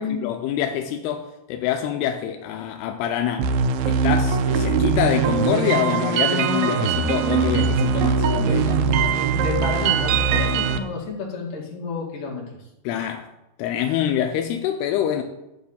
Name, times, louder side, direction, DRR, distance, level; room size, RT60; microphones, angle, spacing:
voice 1, 0.0-3.6 3.9-8.8 12.8-13.3 13.6-15.2, left 10 dB, 85° left, 2.7 m, -25 dB
sound 1, 3.4-10.8, right 5 dB, 80° right, 2.4 m, -21 dB
voice 2, 9.3-12.4, left 4 dB, 60° left, 3.5 m, -30 dB
11.5 x 4.2 x 7.0 m
omnidirectional pair, 4.6 m